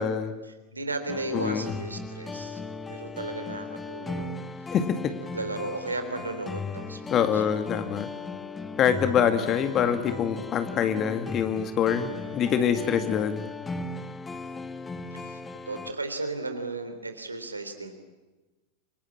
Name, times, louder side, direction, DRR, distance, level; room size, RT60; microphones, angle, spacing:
voice 1, 0.4-2.6 2.9-4.8 5.3-7.4 8.9-9.3 11.9-12.4 12.8-13.2 15.1-15.4 15.7-17.9, right 2 dB, 80° right, 8 dB, 3.5 m, -36 dB
sound 1, 1.1-15.9, left 3 dB, 15° left, 1.4 m, -37 dB
voice 2, 1.3-1.7 4.7-5.1 7.1-8.1 8.8-13.5, left 8 dB, 30° left, 9 dB, 2.0 m, -25 dB
27.5 x 25.0 x 8.8 m, 1.2 s
figure-of-eight pair, 90°, 0 cm